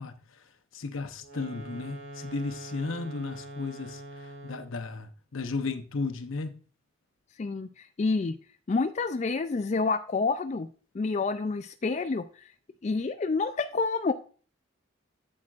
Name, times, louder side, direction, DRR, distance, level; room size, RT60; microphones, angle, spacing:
voice 1, 0.0-6.6, left 3 dB, 80° left, 0.8 m, -35 dB
sound 1, 1.2-4.8, right 1 dB, 80° right, 2.4 m, -44 dB
voice 2, 8.0-8.4 8.7-10.7 10.9-12.2 12.8-14.1, left 4 dB, 35° left, 0.3 m, -28 dB
8.6 x 7.6 x 2.4 m
head